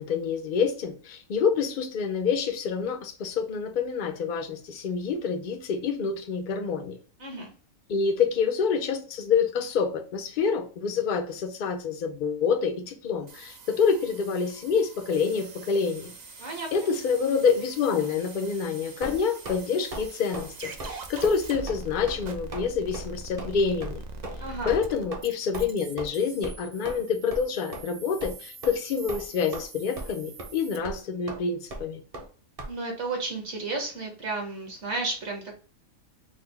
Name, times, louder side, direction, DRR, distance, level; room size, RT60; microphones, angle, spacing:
voice 1, 0.0-7.0 7.9-16.1 16.7-24.0 24.7-32.0, left 6 dB, 80° left, 0.4 m, -27 dB
voice 2, 7.2-7.5 16.4-16.9 24.4-24.8 32.7-35.6, right 3 dB, 60° right, 1.4 m, -33 dB
sound 1, 13.3-30.8, right 3 dB, 85° right, 0.3 m, -44 dB
sound 2, 19.0-19.6 19.9-20.1 20.3-20.5 20.8-21.0 21.2-21.4 21.7-21.8 22.1-22.2 22.5-22.7 22.9-23.0 23.4-23.5 23.8-23.9 24.2-24.4 24.7-24.8 25.1-25.2 25.5-25.7 26.0-26.1 26.4-26.6 26.8-27.0 27.3-27.4 27.7-27.8 28.2-28.3 28.6-28.8 29.1-29.7 30.0-30.1 30.4-30.5 30.8-31.0 31.3-31.4 31.7-31.8 32.1-32.3 32.6-32.7, right 1 dB, 40° right, 0.6 m, -36 dB
3.9 x 2.0 x 3.2 m
omnidirectional pair, 1.4 m